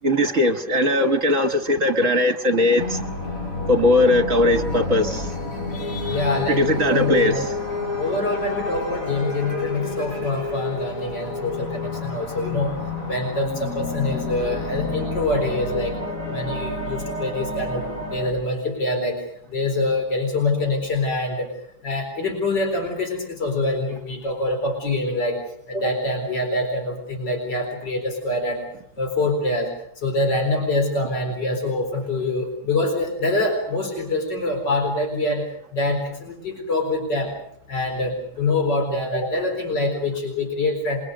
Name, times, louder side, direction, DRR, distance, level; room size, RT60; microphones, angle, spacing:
voice 1, 0.0-3.1 3.7-5.4 6.5-7.3, left 1 dB, 50° right, 1.6 m, -19 dB
sound 1, 2.8-18.3, left 2 dB, 50° left, 6.2 m, -29 dB
voice 2, 5.7-7.4 8.0-12.8 13.0-15.9 16.3-21.5 21.8-28.7 29.0-37.4 37.7-41.0, left 2 dB, 75° left, 4.9 m, -25 dB
29.0 x 23.0 x 6.5 m
omnidirectional pair, 1.9 m